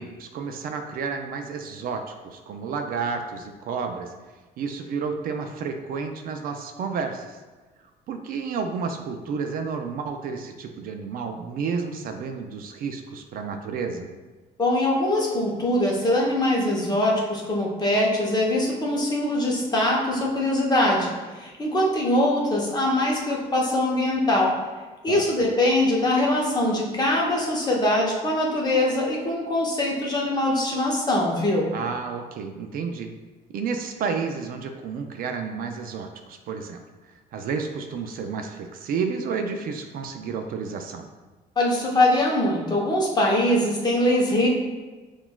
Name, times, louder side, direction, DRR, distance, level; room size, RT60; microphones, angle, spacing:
voice 1, 0.0-4.1 4.6-7.4 8.1-14.1 25.1-25.2 31.7-33.1 33.5-36.8 37.3-41.1, right 5 dB, 60° right, 5 dB, 0.4 m, -31 dB
voice 2, 14.6-21.1 21.4-24.6 25.0-31.7 41.6-44.5, left 1 dB, 25° left, -2 dB, 0.8 m, -22 dB
5.9 x 2.3 x 2.3 m, 1.3 s
cardioid pair, 110°, 17 cm